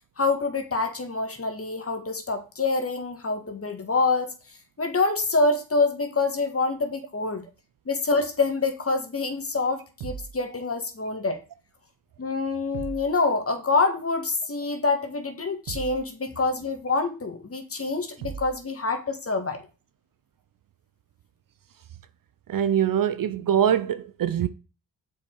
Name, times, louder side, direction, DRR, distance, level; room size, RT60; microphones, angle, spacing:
voice 1, 0.2-4.3 4.8-7.4 7.8-11.4 12.2-19.6, left 3 dB, 30° left, 1.8 m, -26 dB
sound 1, 10.0-10.4 12.7-13.1 15.7-16.0 18.2-18.6, right 7 dB, 90° right, 1.5 m, -36 dB
voice 2, 22.5-24.5, right 9 dB, 50° right, 0.7 m, -23 dB
6.9 x 5.0 x 4.7 m
supercardioid pair, 55°, 43 cm